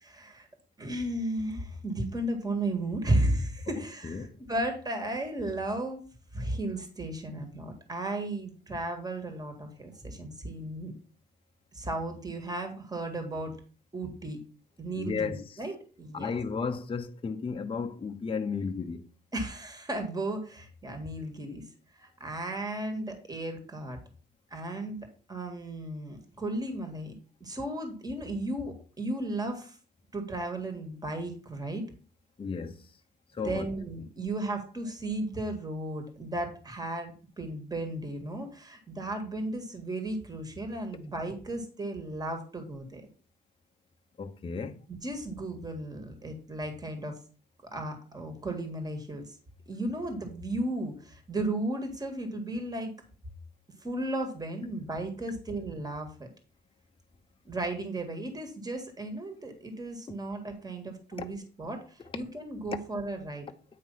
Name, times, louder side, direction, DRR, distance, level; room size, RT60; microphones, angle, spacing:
voice 1, 0.0-0.5 0.8-6.0 6.3-10.9 11.7-13.5 13.9-14.4 14.8-16.4 19.3-21.6 21.9-24.0 24.5-25.0 25.3-27.1 27.4-29.8 30.1-31.8 33.4-43.0 44.9-47.2 47.7-49.4 49.7-52.9 53.8-56.3 57.4-63.5, right 1 dB, 20° right, 1.7 m, -34 dB
voice 2, 4.0-4.4 15.0-15.6 16.1-19.1 32.4-32.8 33.3-33.7 44.2-44.8 61.2-61.3, left 5 dB, 25° left, 0.7 m, -34 dB
8.6 x 3.1 x 5.5 m
cardioid pair, 90°, 20 cm